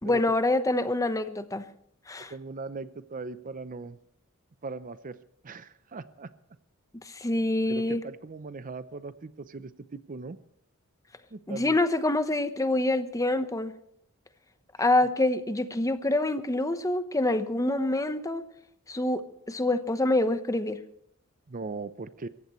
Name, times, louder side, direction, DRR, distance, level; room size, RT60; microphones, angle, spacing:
voice 1, 0.0-1.7 2.1-2.3 7.0-8.0 11.5-13.7 14.8-18.4 18.9-20.8, left 2 dB, 15° left, 10 dB, 0.9 m, -26 dB
voice 2, 2.3-4.0 4.6-5.2 5.4-6.3 7.7-10.4 11.3-11.8 21.5-22.3, right 3 dB, 40° right, 14 dB, 0.6 m, -39 dB
25.5 x 15.0 x 3.1 m, 0.68 s
head